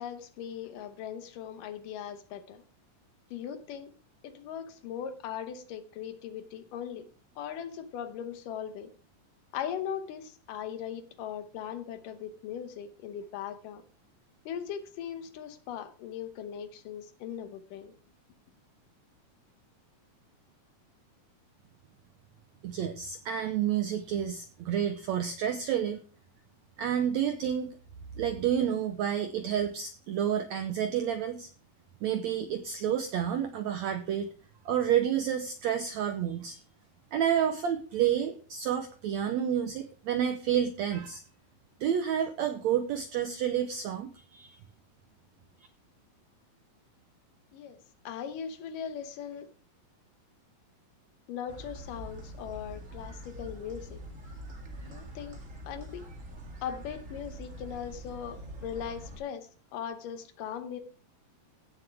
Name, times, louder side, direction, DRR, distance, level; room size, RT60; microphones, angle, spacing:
voice 1, 0.0-2.6 3.3-3.9 4.2-7.1 7.4-8.9 9.5-13.8 14.5-17.9 47.5-47.8 48.0-49.5 51.3-54.0 54.8-55.4 55.7-56.0 56.6-60.8, left 8 dB, 75° left, 2.4 m, -39 dB
voice 2, 22.6-26.0 26.8-27.7 28.2-31.5 32.0-34.3 34.6-36.6 37.1-41.2 41.8-44.6, right 9 dB, 80° right, 1.6 m, -29 dB
sound 1, 51.5-59.2, equal, 30° right, 1.5 m, -44 dB
16.0 x 7.1 x 3.5 m
omnidirectional pair, 4.1 m